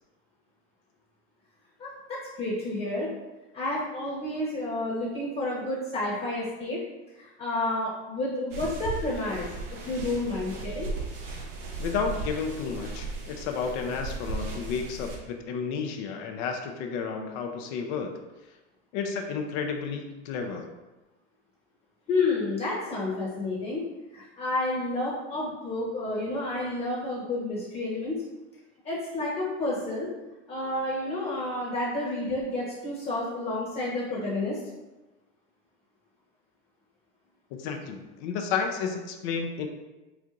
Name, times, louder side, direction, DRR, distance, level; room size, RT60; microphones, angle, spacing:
voice 1, 1.8-3.1 3.5-6.8 7.1-9.5 9.8-10.9 22.1-23.8 24.1-28.2 28.8-30.1 30.5-34.6, left 2 dB, 25° left, -5 dB, 1.0 m, -30 dB
sound 1, 8.5-15.2, right 3 dB, 85° right, 0.8 m, -36 dB
voice 2, 11.8-18.1 18.9-20.6 37.5-39.7, left 5 dB, 65° left, 4 dB, 0.6 m, -32 dB
4.4 x 2.5 x 2.4 m, 1.1 s
supercardioid pair, 100°, 35 cm